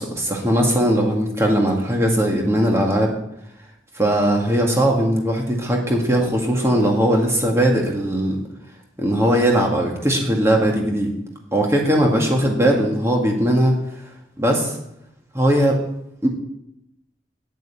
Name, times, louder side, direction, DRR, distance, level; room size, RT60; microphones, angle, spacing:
voice 1, 0.0-3.1 3.9-8.4 9.0-11.1 11.5-13.8 14.4-14.8 15.3-15.8 16.2-16.3, right 1 dB, 15° right, 0 dB, 2.0 m, -19 dB
9.1 x 8.1 x 8.8 m, 0.82 s
head